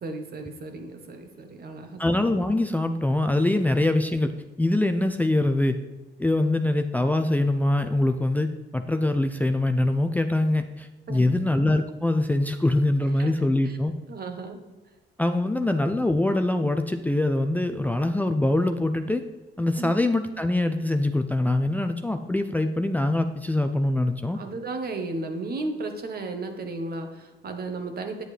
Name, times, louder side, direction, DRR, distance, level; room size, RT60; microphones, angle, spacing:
voice 1, 0.0-2.0 11.1-11.4 13.2-13.3 13.6-13.8 14.1-14.6 19.8-19.9 24.3-28.2, right 3 dB, 50° right, 5 dB, 1.3 m, -34 dB
voice 2, 2.0-4.3 4.6-5.8 6.2-13.9 15.2-19.2 19.6-24.4, left 1 dB, 10° left, 7 dB, 0.5 m, -23 dB
9.1 x 8.0 x 3.3 m, 1.2 s
cardioid pair, 90°, 20 cm